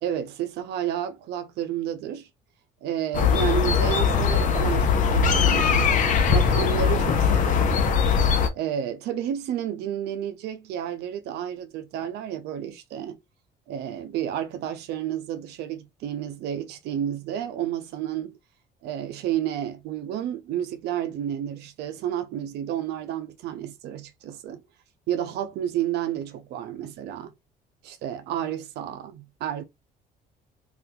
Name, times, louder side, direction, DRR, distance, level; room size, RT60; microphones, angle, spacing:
voice 1, 0.0-2.3 2.8-5.9 6.3-7.9 8.6-13.2 13.7-18.4 18.8-24.6 25.1-27.3 27.8-29.6, right 10 dB, 75° right, 0.6 m, -31 dB
sound 1, 3.1-8.5, left 6 dB, 50° left, 0.7 m, -21 dB
2.8 x 2.5 x 3.6 m
cardioid pair, 110°, 17 cm